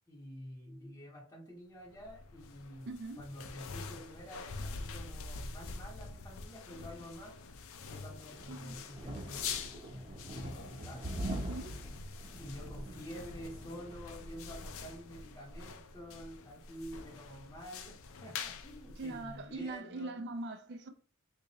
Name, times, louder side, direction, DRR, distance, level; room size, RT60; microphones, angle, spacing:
voice 1, 0.1-2.9 3.2-7.5 7.9-9.5 9.9-11.3 12.4-20.2, equal, 15° left, 0.7 m, -49 dB
sound 1, 1.9-19.7, left 5 dB, 65° left, 0.5 m, -46 dB
voice 2, 2.9-3.2 8.5-8.8 11.3-11.9 19.0-20.9, right 2 dB, 55° right, 0.4 m, -42 dB
sound 2, 7.8-15.3, right 1 dB, 35° right, 0.9 m, -44 dB
3.7 x 2.7 x 2.9 m
head